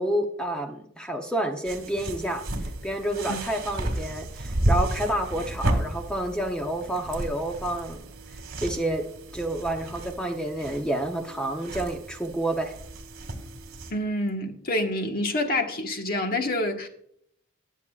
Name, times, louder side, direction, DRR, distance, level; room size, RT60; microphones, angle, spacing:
voice 1, 0.0-2.4 2.8-8.0 8.6-9.0 9.3-12.7, right 1 dB, 5° left, 0.8 m, -29 dB
sound 1, 1.6-13.9, right 1 dB, 50° right, 2.3 m, -32 dB
voice 2, 13.9-16.9, left 1 dB, 45° left, 1.4 m, -27 dB
20.5 x 7.2 x 2.4 m
head